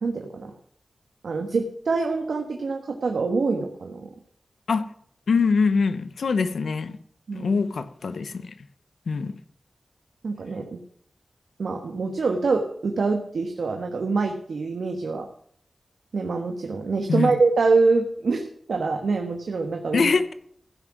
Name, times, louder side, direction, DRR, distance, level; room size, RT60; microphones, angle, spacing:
voice 1, 0.0-0.5 1.2-4.1 7.3-7.5 10.2-10.8 11.6-15.3 16.1-20.1, right 4 dB, 85° right, 4 dB, 1.4 m, -25 dB
voice 2, 5.3-7.0 7.3-8.6 9.1-9.3 17.1-17.3 19.9-20.3, left 5 dB, 90° left, 12 dB, 0.9 m, -23 dB
15.5 x 6.2 x 6.0 m, 0.64 s
wide cardioid pair, 75°, 0 cm